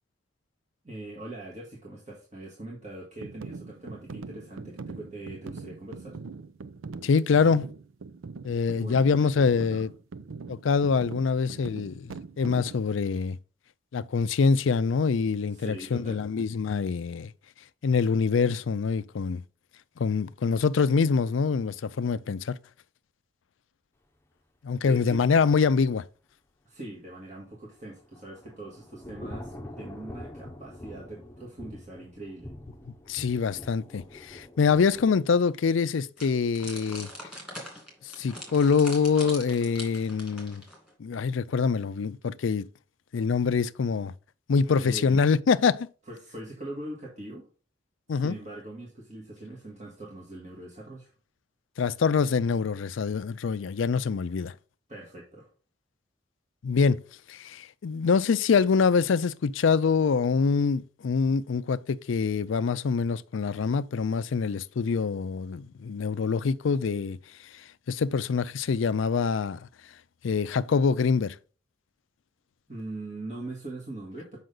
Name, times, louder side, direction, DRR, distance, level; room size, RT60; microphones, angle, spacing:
voice 1, 0.8-6.2 8.8-9.9 15.5-16.2 24.8-25.2 26.7-32.5 44.8-45.2 46.1-47.4 48.1-51.1 54.9-55.5 72.7-74.4, right 2 dB, 35° right, 1.8 m, -42 dB
sound 1, 3.2-12.9, right 4 dB, 85° right, 0.5 m, -42 dB
voice 2, 7.0-7.7 8.4-9.9 10.5-13.4 13.9-17.3 17.8-19.4 20.0-22.6 24.6-26.0 33.1-37.1 38.2-40.6 41.0-42.7 43.1-44.1 44.5-45.9 48.1-48.4 51.8-54.5 56.6-57.0 57.3-67.2 67.9-69.6 70.2-71.4, left 5 dB, 70° left, 0.4 m, -25 dB
Thunder / Rain, 27.7-35.1, left 1 dB, 10° left, 0.8 m, -45 dB
sound 2, 36.2-40.9, left 1 dB, 5° right, 2.7 m, -42 dB
7.7 x 5.6 x 3.8 m
head